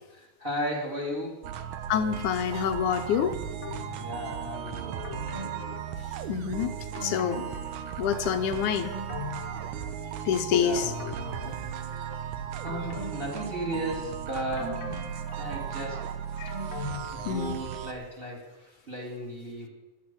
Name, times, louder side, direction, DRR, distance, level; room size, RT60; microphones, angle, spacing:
voice 1, 0.1-1.5 4.0-5.8 10.6-11.0 11.5-12.2 12.6-14.9 15.4-16.2 16.9-19.7, equal, 15° right, 2 dB, 3.5 m, -36 dB
sound 1, 1.4-17.9, right 9 dB, 85° right, 2.5 m, -36 dB
voice 2, 1.9-3.4 6.3-7.5 8.0-8.9 10.3-10.9 11.4-11.5 16.4-16.5 17.3-17.6, left 8 dB, 80° left, 8 dB, 2.5 m, -27 dB
sound 2, 3.6-4.4 5.0-6.5 6.9-8.3 8.6-10.3 10.8-12.1 12.7-14.1 14.6-17.8 18.1-18.2, left 3 dB, 35° left, 1.8 m, -41 dB
13.5 x 12.5 x 7.9 m, 1.1 s
omnidirectional pair, 3.5 m